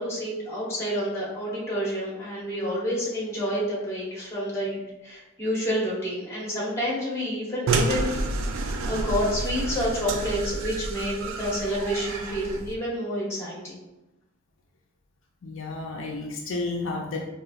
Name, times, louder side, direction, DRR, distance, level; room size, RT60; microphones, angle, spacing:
voice 1, 0.0-8.2 8.6-13.8, equal, 15° left, -5 dB, 0.8 m, -29 dB
sound 1, 7.7-12.7, right 3 dB, 70° right, 0.3 m, -29 dB
voice 2, 15.4-17.3, left 3 dB, 65° left, 0 dB, 0.4 m, -31 dB
3.9 x 2.4 x 2.4 m, 1.0 s
head